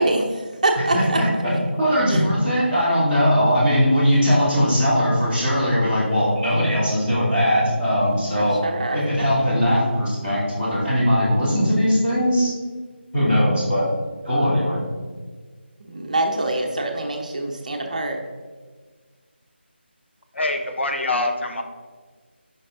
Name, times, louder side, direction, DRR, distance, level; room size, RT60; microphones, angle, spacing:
voice 1, 0.0-1.2 2.1-2.2 8.3-9.0 15.8-18.2, right 2 dB, 40° right, 2 dB, 0.7 m, -24 dB
voice 2, 0.9-1.5 1.8-8.6 8.9-12.5 13.1-13.8 14.2-14.8, equal, 10° left, -9 dB, 1.5 m, -20 dB
voice 3, 20.3-21.6, left 2 dB, 80° left, 4 dB, 1.0 m, -24 dB
5.4 x 5.3 x 3.6 m, 1.5 s
figure-of-eight pair, 175°, 6 cm